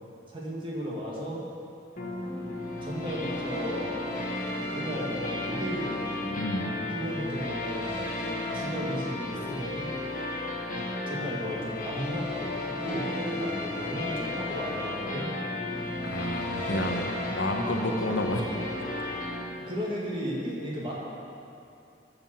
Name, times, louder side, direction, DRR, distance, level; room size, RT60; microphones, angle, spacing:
voice 1, 0.3-1.4 2.8-3.9 4.7-6.3 6.9-8.0 8.5-9.9 10.7-15.3 16.8-17.1 19.7-20.9, equal, 30° right, -4 dB, 2.0 m, -35 dB
sound 1, 2.0-19.4, left 2 dB, 50° left, 1.5 m, -33 dB
voice 2, 6.3-6.8 16.0-17.0 17.3-18.5, left 1 dB, 80° left, 2 dB, 1.0 m, -30 dB
13.0 x 5.3 x 6.0 m, 2.6 s
head